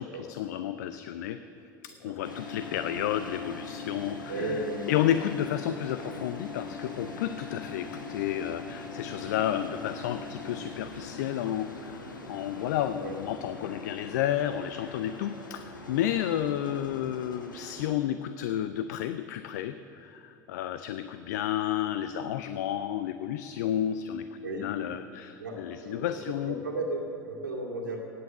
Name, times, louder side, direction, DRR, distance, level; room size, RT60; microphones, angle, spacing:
voice 1, 0.0-1.4 1.8-4.6 4.9-12.0 12.3-26.6, left 11 dB, 60° left, 12 dB, 0.5 m, -31 dB
sound 1, 2.2-18.0, left 3 dB, 80° left, 1.2 m, -42 dB
voice 2, 4.3-4.9 13.0-13.2 16.4-16.5 24.4-24.7 25.4-28.0, right 2 dB, 75° right, 0 dB, 2.3 m, -35 dB
17.0 x 9.5 x 6.8 m, 2.9 s
figure-of-eight pair, 75°, 10 cm